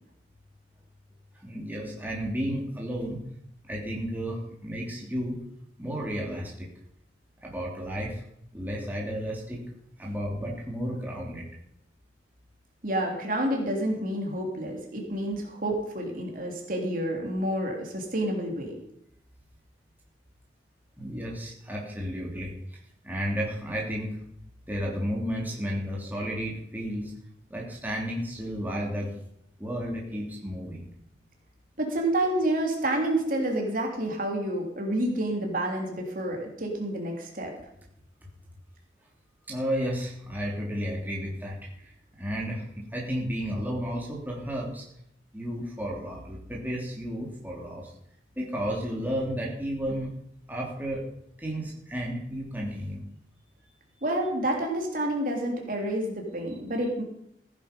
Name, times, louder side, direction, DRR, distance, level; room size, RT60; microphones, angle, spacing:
voice 1, 1.4-3.2 3.7-5.4 5.8-6.7 7.4-8.2 8.5-9.6 10.0-11.4 21.0-22.5 23.0-24.2 24.7-27.1 27.5-29.1 29.6-30.9 39.5-41.9 42.2-44.8 45.3-47.9 48.3-50.1 50.5-51.0 51.4-53.1, equal, 10° right, -3 dB, 3.1 m, -32 dB
voice 2, 12.8-18.8 31.8-37.5 54.0-57.0, right 1 dB, 50° right, 1 dB, 3.2 m, -29 dB
15.5 x 10.0 x 5.3 m, 0.74 s
head